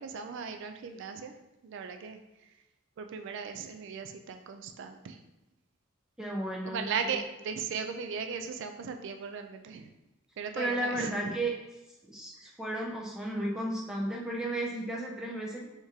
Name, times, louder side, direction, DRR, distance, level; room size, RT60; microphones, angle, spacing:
voice 1, 0.0-1.3 1.6-2.5 3.0-5.2 6.6-9.9 10.4-11.4 12.4-12.5, right 6 dB, 60° right, 6 dB, 0.3 m, -37 dB
voice 2, 6.2-7.2 10.6-11.5 12.1-15.7, right 1 dB, 5° right, -3 dB, 0.4 m, -34 dB
4.7 x 3.6 x 2.7 m, 0.97 s
head